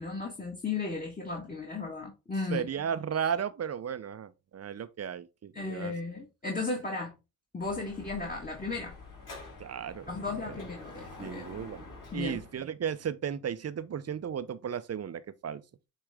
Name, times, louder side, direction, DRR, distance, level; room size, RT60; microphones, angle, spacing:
voice 1, 0.0-2.7 5.5-7.2 7.5-9.0 10.1-11.7 12.1-12.4, left 3 dB, 20° left, 1.7 m, -35 dB
voice 2, 2.5-5.9 9.6-10.1 10.5-10.6 11.2-11.8 12.1-15.6, right 8 dB, 35° right, 0.7 m, -34 dB
Dog / Motorcycle, 7.6-12.6, left 3 dB, 45° left, 3.7 m, -47 dB
7.9 x 3.3 x 3.6 m
hypercardioid pair, 60°, 45 cm